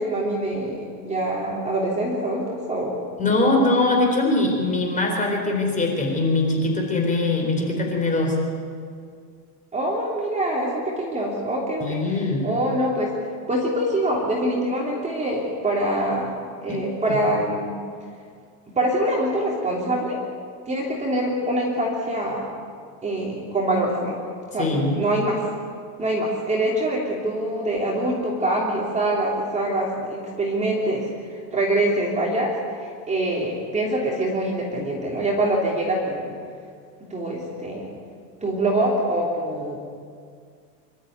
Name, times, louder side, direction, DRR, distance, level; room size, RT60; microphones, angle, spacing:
voice 1, 0.0-3.0 9.7-13.1 13.5-16.3 16.6-17.7 18.7-20.2 20.7-22.4 23.0-24.2 24.5-25.4 26.0-36.3 37.1-37.9 38.4-39.8, right 1 dB, 15° right, -2 dB, 3.3 m, -24 dB
voice 2, 3.2-8.4 11.8-12.4 16.7-16.8 17.1-17.2 24.6-25.0, left 2 dB, 15° left, 1 dB, 4.2 m, -22 dB
25.5 x 13.0 x 9.4 m, 2.1 s
supercardioid pair, 145°, 48 cm